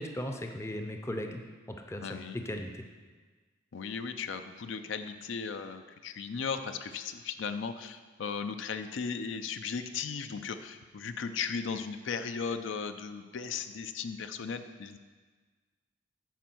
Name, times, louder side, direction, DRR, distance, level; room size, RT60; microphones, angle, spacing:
voice 1, 0.0-1.4 1.7-2.0 2.3-2.8, left 1 dB, 15° left, 4 dB, 0.5 m, -37 dB
voice 2, 2.0-2.4 3.7-15.0, left 5 dB, 70° left, 9 dB, 0.5 m, -36 dB
9.2 x 4.6 x 6.0 m, 1.4 s
head